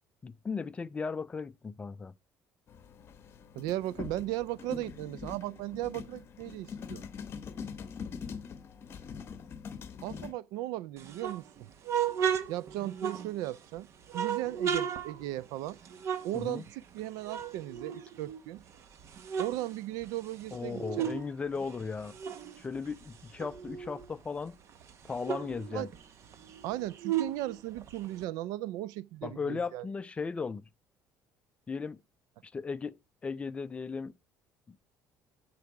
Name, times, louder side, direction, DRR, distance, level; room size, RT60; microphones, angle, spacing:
voice 1, 0.2-2.1 16.3-16.7 20.5-22.2 22.6-24.6 25.0-25.9 29.2-30.7 31.7-32.0 32.4-34.2 34.7-34.8, left 5 dB, 20° left, 0.4 m, -36 dB
sound 1, 2.7-10.3, left 6 dB, 40° left, 0.9 m, -43 dB
voice 2, 3.6-7.0 10.0-11.5 12.5-13.9 14.1-15.8 16.2-18.6 19.4-21.1 25.7-25.9 26.6-29.9, right 15 dB, 85° right, 0.4 m, -36 dB
sound 2, 11.0-13.6 14.1-17.0 17.2-18.6 19.0-21.3 21.5-24.1 24.5-24.6 24.8-28.2, right 8 dB, 45° right, 0.9 m, -35 dB
12.0 x 4.8 x 4.7 m
cardioid pair, 145°, 6 cm